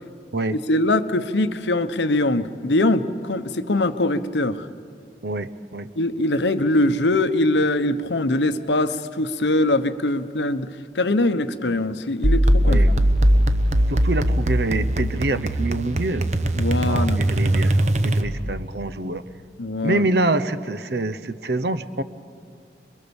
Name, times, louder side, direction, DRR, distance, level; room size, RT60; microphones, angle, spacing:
voice 1, 0.5-4.7 6.0-10.7 10.9-12.8 16.5-17.2 19.6-20.1, left 2 dB, 85° left, 11 dB, 1.0 m, -22 dB
voice 2, 5.2-5.9 12.6-12.9 13.9-16.3 16.9-17.8 18.0-19.2 19.8-22.0, right 2 dB, 65° right, 13 dB, 0.9 m, -25 dB
sound 1, 12.2-18.6, right 1 dB, 40° right, 1.0 m, -20 dB
27.0 x 22.0 x 7.1 m, 2.2 s
head